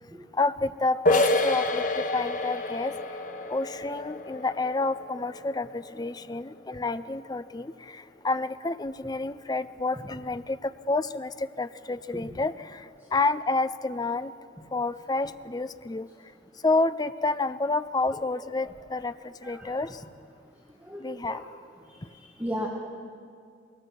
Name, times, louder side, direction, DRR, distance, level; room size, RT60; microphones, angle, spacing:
voice 1, 0.3-2.9 3.5-14.3 14.7-16.1 16.6-20.0 21.0-21.4 22.0-22.1, left 3 dB, 20° left, 13 dB, 0.5 m, -29 dB
sound 1, 1.1-6.5, left 2 dB, 45° left, 1.1 m, -29 dB
voice 2, 20.9-21.4 21.9-22.7, equal, 10° right, -2 dB, 1.6 m, -35 dB
21.5 x 20.0 x 6.0 m, 2.3 s
head